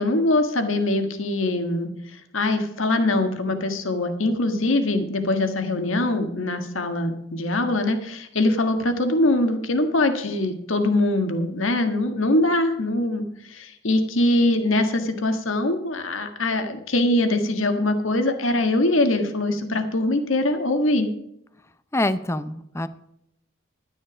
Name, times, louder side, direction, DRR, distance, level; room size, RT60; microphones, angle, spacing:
voice 1, 0.0-1.9 2.3-21.1, left 2 dB, 70° left, 7 dB, 1.5 m, -22 dB
voice 2, 21.9-22.9, left 1 dB, 10° left, 13 dB, 0.5 m, -25 dB
12.0 x 9.9 x 5.0 m, 0.77 s
head